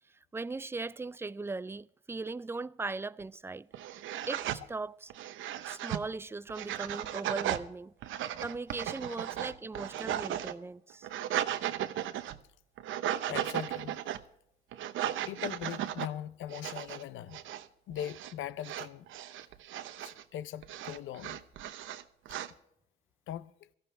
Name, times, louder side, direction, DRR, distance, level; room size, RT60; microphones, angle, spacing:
voice 1, 0.3-3.7 4.3-5.1 5.6-7.9 8.4-11.1, right 3 dB, 10° right, 0.4 m, -39 dB
sound 1, 3.2-3.3 3.7-4.6 5.1-6.0 6.5-7.7 8.0-10.5 10.9-12.4 12.8-14.2 14.7-16.1 16.5-17.0 17.3-17.7 17.9-18.3 18.6-20.2 20.6-22.5, right 11 dB, 80° right, 0.8 m, -36 dB
voice 2, 13.3-14.0 15.3-17.4 17.9-19.1 20.0-21.4 23.3-23.5, left 11 dB, 80° left, 0.6 m, -40 dB
18.5 x 14.5 x 3.4 m
cardioid pair, 90°, 20 cm